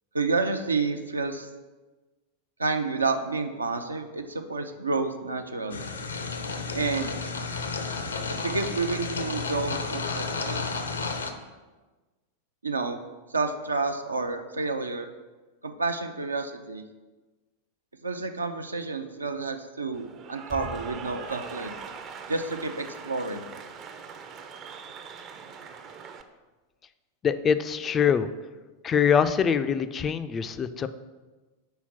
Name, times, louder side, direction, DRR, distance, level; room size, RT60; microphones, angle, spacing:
voice 1, 0.1-1.5 2.6-5.9 6.7-7.2 8.3-10.7 12.6-13.0 13.3-15.1 15.6-16.8 18.0-21.7 22.3-23.5, right 3 dB, 80° right, 7 dB, 0.5 m, -30 dB
sound 1, 5.7-11.3, left 4 dB, 75° left, 0.6 m, -32 dB
Cheering / Applause, 19.9-26.2, right 5 dB, 35° right, 0.5 m, -41 dB
voice 2, 27.2-28.3 28.8-30.9, left 7 dB, 25° left, 11 dB, 0.3 m, -24 dB
5.7 x 4.2 x 5.9 m, 1.2 s
figure-of-eight pair, 90°, 0 cm